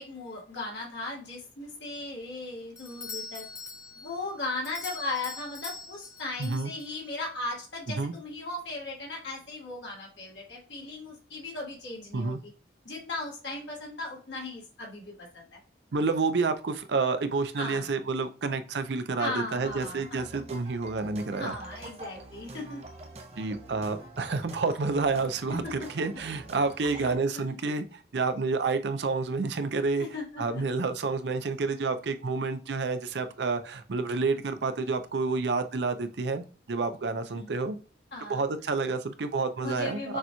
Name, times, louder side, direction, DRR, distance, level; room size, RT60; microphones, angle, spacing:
voice 1, 0.0-3.4 3.9-12.5 12.8-15.4 17.5-17.9 19.2-20.3 21.4-22.8 25.8-26.2 26.8-27.1 27.5-27.6 30.0-30.6 37.3-37.5 38.1-38.4 39.6-40.2, left 2 dB, 85° left, -3 dB, 1.7 m, -37 dB
Doorbell, 2.8-7.2, left 4 dB, 15° left, 0.4 m, -43 dB
voice 2, 6.4-6.7 8.0-8.1 12.1-12.4 15.9-21.5 23.4-27.9 28.1-30.1 30.4-37.8 38.3-40.2, right 4 dB, 75° right, 9 dB, 0.5 m, -29 dB
sound 1, 19.6-27.1, right 2 dB, 35° right, 0.7 m, -46 dB
6.6 x 3.0 x 2.2 m, 0.38 s
head